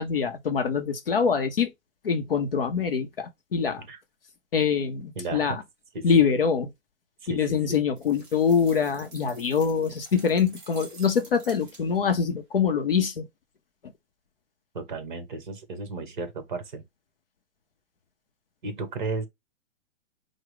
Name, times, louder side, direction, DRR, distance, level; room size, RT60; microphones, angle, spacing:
voice 1, 0.0-1.7 2.0-3.9 4.5-5.6 6.0-6.7 7.3-13.2, left 6 dB, 45° left, 0.6 m, -24 dB
voice 2, 5.2-5.6 5.9-6.1 7.2-7.8 14.7-16.8 18.6-19.3, right 3 dB, 35° right, 1.0 m, -34 dB
sound 1, 8.0-12.1, right 3 dB, 20° right, 2.1 m, -49 dB
4.8 x 2.0 x 4.7 m
hypercardioid pair, 175°, 40 cm